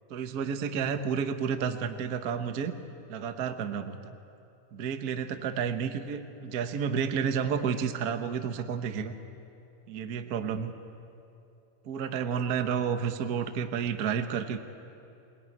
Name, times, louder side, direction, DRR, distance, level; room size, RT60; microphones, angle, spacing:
voice 1, 0.1-2.7 3.1-4.2 4.7-9.1 9.9-10.7 11.8-14.6, right 7 dB, 90° right, 7 dB, 0.8 m, -31 dB
22.0 x 21.5 x 9.4 m, 2.7 s
omnidirectional pair, 3.5 m